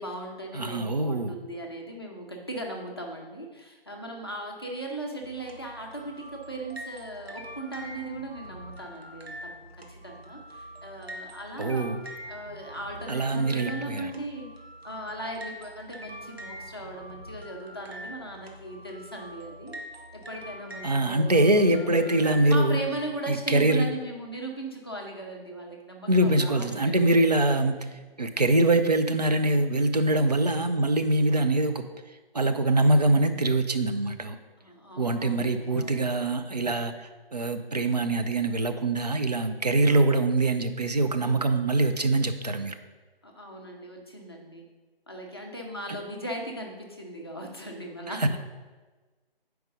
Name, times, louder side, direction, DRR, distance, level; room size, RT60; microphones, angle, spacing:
voice 1, 0.0-11.9 12.3-14.5 14.8-19.8 20.1-22.2 22.5-27.0 34.6-36.1 43.2-44.6 45.1-48.4, right 1 dB, 25° left, 0 dB, 0.5 m, -38 dB
voice 2, 0.5-1.3 11.6-12.0 13.1-14.1 20.8-22.8 23.3-23.9 26.1-27.8 28.2-31.8 32.3-34.4 35.0-42.7 48.1-48.3, right 2 dB, 45° right, 8 dB, 0.4 m, -23 dB
sound 1, 5.2-22.5, equal, 90° right, 1.0 m, -44 dB
4.8 x 4.6 x 5.1 m, 1.3 s
figure-of-eight pair, 155°, 30 cm